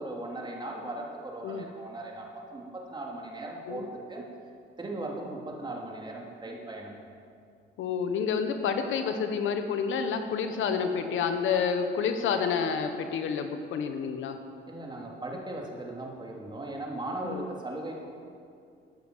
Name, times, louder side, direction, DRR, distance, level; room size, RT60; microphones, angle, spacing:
voice 1, 0.0-4.2 4.8-7.0 14.7-18.1, right 2 dB, 25° right, -1 dB, 2.9 m, -38 dB
voice 2, 7.8-14.4 17.2-17.5, left 6 dB, 80° left, 7 dB, 1.2 m, -29 dB
13.0 x 9.0 x 7.9 m, 2.4 s
cardioid pair, 90°, 20 cm